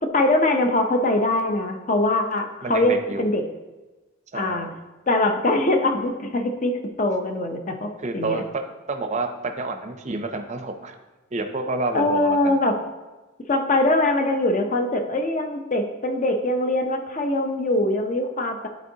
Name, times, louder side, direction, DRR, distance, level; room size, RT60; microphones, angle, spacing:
voice 1, 0.0-3.4 4.3-4.7 5.1-8.4 11.9-12.8 13.5-18.7, left 2 dB, 40° left, 5 dB, 0.6 m, -22 dB
voice 2, 2.6-3.3 4.3-4.7 8.0-8.6 8.9-10.9 11.3-12.5, right 3 dB, 35° right, 6 dB, 0.6 m, -29 dB
10.5 x 4.4 x 2.7 m, 1.2 s
head